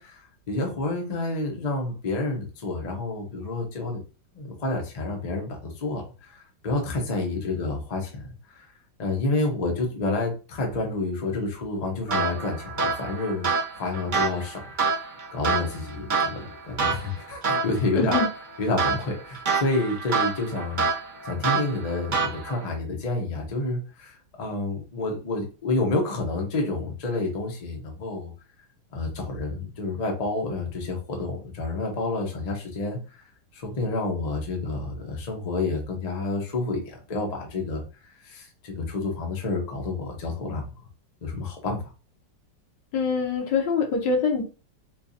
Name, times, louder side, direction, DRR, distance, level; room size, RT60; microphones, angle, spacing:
voice 1, 0.0-4.0 4.3-8.7 9.0-13.5 13.8-14.6 14.8-18.2 18.6-20.8 21.2-28.3 28.9-33.2 33.5-37.8 38.2-40.7 41.2-41.8, left 2 dB, 40° left, 1 dB, 0.6 m, -29 dB
sound 1, 12.1-22.7, right 5 dB, 50° right, 0.6 m, -28 dB
voice 2, 18.0-18.3 42.9-44.4, left 5 dB, 75° left, 2 dB, 1.5 m, -24 dB
4.5 x 2.4 x 2.7 m, 0.33 s
omnidirectional pair, 1.9 m